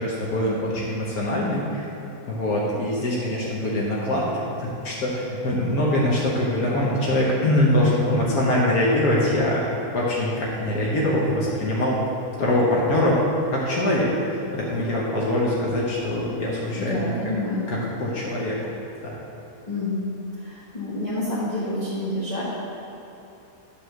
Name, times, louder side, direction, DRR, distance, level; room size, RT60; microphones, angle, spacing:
voice 1, 0.0-1.9 2.3-9.6 9.9-12.0 12.4-13.2 13.5-17.2 17.7-18.6 19.0-19.2, left 1 dB, 80° left, -5 dB, 1.5 m, -23 dB
voice 2, 16.8-17.6 19.7-20.1 20.4-22.4, left 1 dB, 30° left, -10 dB, 1.3 m, -28 dB
8.6 x 3.7 x 6.4 m, 3.0 s
omnidirectional pair, 1.6 m